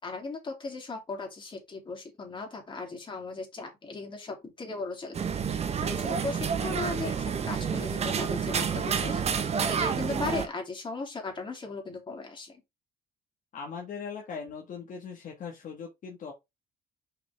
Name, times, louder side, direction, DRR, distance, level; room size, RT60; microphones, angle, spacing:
voice 1, 0.0-12.6, left 3 dB, 30° left, 3.1 m, -37 dB
sound 1, 5.1-10.5, right 6 dB, 40° right, 1.0 m, -29 dB
voice 2, 13.5-16.3, left 6 dB, 50° left, 1.6 m, -40 dB
5.9 x 5.5 x 3.5 m
cardioid pair, 110°, 17 cm